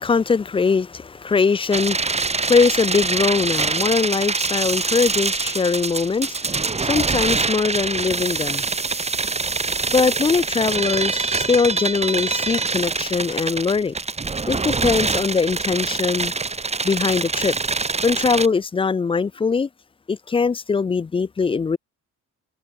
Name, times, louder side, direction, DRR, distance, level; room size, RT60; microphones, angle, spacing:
voice 1, 0.0-8.7 9.9-13.9 14.5-16.3 16.8-17.5 18.0-19.7 20.1-21.8, left 5 dB, 20° left, 0.3 m, -21 dB
sound 1, 1.7-18.5, right 4 dB, 20° right, 1.3 m, -24 dB
cardioid pair, 90°, 30 cm